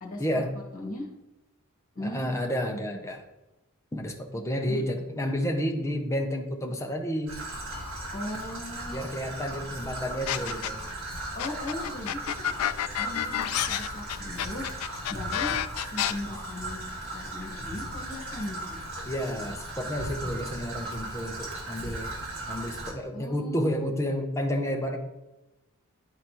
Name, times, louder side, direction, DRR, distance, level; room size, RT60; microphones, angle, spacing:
voice 1, 0.2-0.6 2.0-3.2 3.9-7.4 8.9-10.8 19.0-22.1 22.5-25.0, equal, 15° left, 3 dB, 0.7 m, -30 dB
voice 2, 0.7-1.1 2.0-2.3 4.7-4.8 8.1-9.1 11.4-12.3 13.0-18.8 23.1-23.7, left 1 dB, 40° left, -1 dB, 1.8 m, -38 dB
Traffic noise roadway noise / Trickle dribble, 7.3-22.9, right 1 dB, 65° right, 1.6 m, -37 dB
sound 1, 10.3-10.9 11.4-16.1, left 11 dB, 80° left, 0.3 m, -29 dB
11.0 x 4.0 x 3.0 m, 0.99 s
head